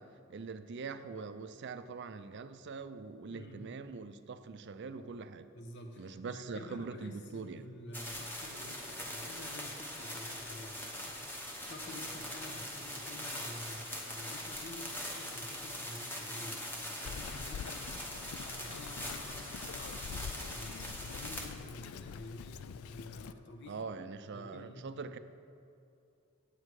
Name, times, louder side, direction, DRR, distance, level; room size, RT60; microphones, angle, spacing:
voice 1, 0.0-5.5 6.0-7.7 23.7-25.2, right 4 dB, 50° right, 11 dB, 0.4 m, -43 dB
voice 2, 3.3-3.7 5.5-23.9 24.3-24.8, left 1 dB, 55° left, 4 dB, 1.0 m, -50 dB
sound 1, 7.9-21.5, left 1 dB, 10° left, 0.9 m, -42 dB
Bird vocalization bird call bird song, 17.1-23.3, left 7 dB, 75° left, 0.3 m, -45 dB
9.6 x 8.4 x 4.7 m, 2.6 s
head